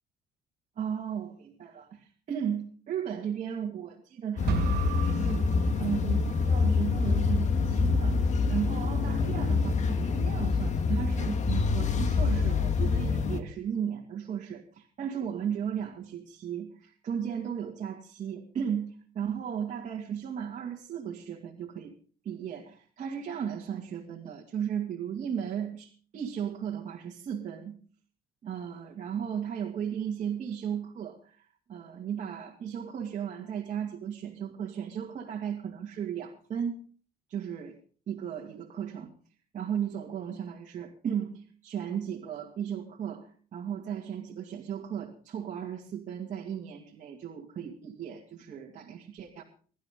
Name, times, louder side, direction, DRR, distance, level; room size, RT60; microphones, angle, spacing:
voice 1, 0.8-5.4 5.8-21.9 22.2-27.8 28.4-36.8 37.3-37.8 38.1-39.1 39.5-49.4, right 8 dB, 45° right, -1 dB, 2.3 m, -35 dB
sound 1, 4.4-13.4, left 4 dB, 45° left, 1.7 m, -26 dB
sound 2, 4.5-6.5, right 11 dB, 70° right, 1.2 m, -35 dB
22.5 x 12.0 x 3.8 m, 0.43 s
cardioid pair, 110°, 17 cm